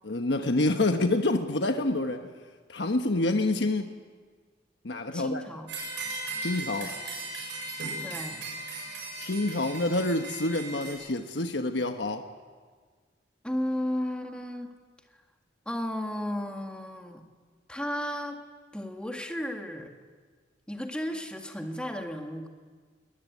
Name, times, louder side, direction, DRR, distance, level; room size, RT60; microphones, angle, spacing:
voice 1, 0.0-2.3 2.7-3.9 4.8-5.4 6.4-6.9 9.2-12.2, left 2 dB, 75° left, 6 dB, 1.2 m, -27 dB
voice 2, 5.1-5.7 8.0-8.5 13.4-14.7 15.7-17.2 17.7-18.4 18.7-19.9 20.7-22.5, equal, 5° left, 3 dB, 1.8 m, -34 dB
sound 1, 5.7-10.9, right 2 dB, 85° right, 7.6 m, -37 dB
22.5 x 19.5 x 9.4 m, 1.5 s
head